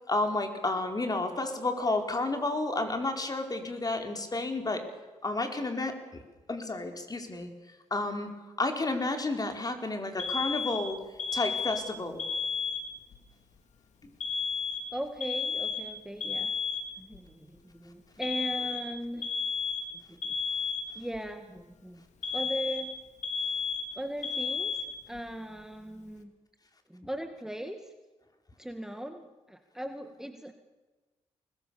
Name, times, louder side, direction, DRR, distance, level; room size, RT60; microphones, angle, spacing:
voice 1, 0.1-4.9 5.2-6.2 6.5-7.5 7.9-8.3 8.6-11.0 11.3-12.2 14.0-14.1, left 2 dB, 30° left, 5 dB, 4.5 m, -31 dB
Alarm, 10.2-13.2 14.2-17.2 18.2-21.2 22.2-25.2, left 5 dB, 70° left, 3.1 m, -33 dB
voice 2, 14.9-16.5 17.0-19.3 19.9-20.4 20.9-22.1 22.3-23.0 23.9-26.3 26.9-27.9 28.6-30.5, right 1 dB, 5° right, 6 dB, 2.1 m, -39 dB
25.5 x 20.5 x 7.1 m, 1.2 s
supercardioid pair, 60°, 12 cm